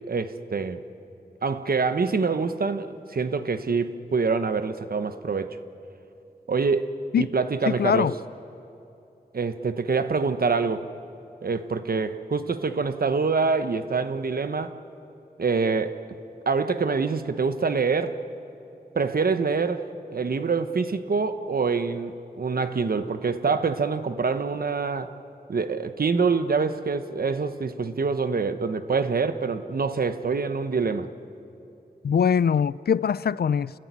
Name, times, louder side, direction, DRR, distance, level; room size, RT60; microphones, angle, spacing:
voice 1, 0.1-0.8 1.4-5.6 6.5-8.1 9.3-10.9 11.4-14.8 15.4-16.0 16.5-18.2 18.9-25.1 25.5-31.1, right 4 dB, 65° right, 1.1 m, -25 dB
voice 2, 7.7-8.1 32.0-33.7, left 7 dB, 75° left, 0.4 m, -22 dB
29.0 x 14.5 x 9.8 m
wide cardioid pair, 80°, 16 cm